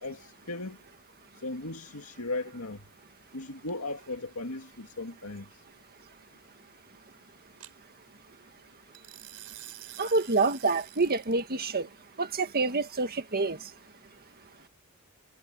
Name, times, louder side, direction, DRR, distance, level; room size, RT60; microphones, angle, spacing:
voice 1, 0.0-0.8 1.4-2.8 3.3-5.6, left 2 dB, 75° left, 2.2 m, -37 dB
sound 1, 3.9-4.1 7.6-7.7 8.9-11.4, right 14 dB, 85° right, 4.3 m, -47 dB
voice 2, 10.0-11.9 12.2-13.6, right 3 dB, 45° right, 1.8 m, -27 dB
head